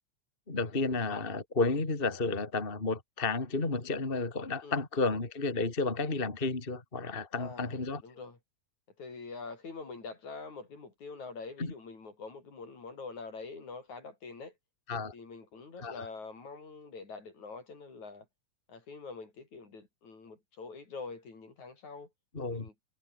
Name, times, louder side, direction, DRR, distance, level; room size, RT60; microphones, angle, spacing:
voice 1, 0.5-8.0 11.6-11.7 14.9-15.1 15.8-16.0 22.3-22.7, left 3 dB, 15° left, 2.8 m, -32 dB
voice 2, 7.4-8.4 9.0-14.5 15.1-18.3 18.7-22.1 22.5-22.7, left 4 dB, 60° left, 6.8 m, -45 dB
omnidirectional pair, 3.8 m